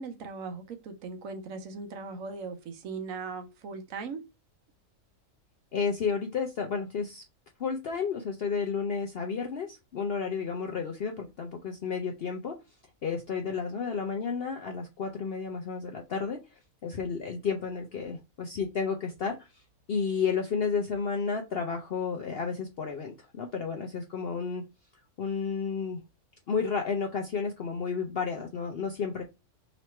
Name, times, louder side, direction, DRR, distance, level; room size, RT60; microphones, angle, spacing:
voice 1, 0.0-4.2, right 4 dB, 70° right, 1.1 m, -39 dB
voice 2, 5.7-7.2 7.6-12.6 13.0-19.6 19.9-24.6 25.2-26.0 26.5-29.2, left 5 dB, 60° left, 0.6 m, -32 dB
3.1 x 3.0 x 4.3 m
omnidirectional pair, 1.6 m